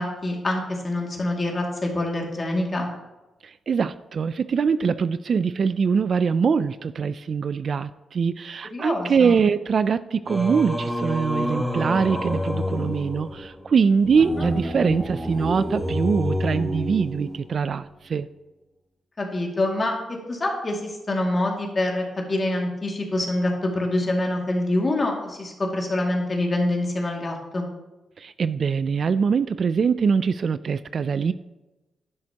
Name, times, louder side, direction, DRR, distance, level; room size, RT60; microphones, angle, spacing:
voice 1, 0.0-2.9 8.7-9.4 14.3-14.5 19.2-19.9 20.3-27.6, left 1 dB, 30° left, 0 dB, 2.3 m, -25 dB
voice 2, 3.7-18.3 28.2-31.3, right 6 dB, 50° right, 14 dB, 0.3 m, -23 dB
Singing, 10.3-17.6, left 1 dB, ahead, 1.5 m, -28 dB
11.0 x 10.5 x 2.9 m, 1.1 s
cardioid pair, 125°, 0 cm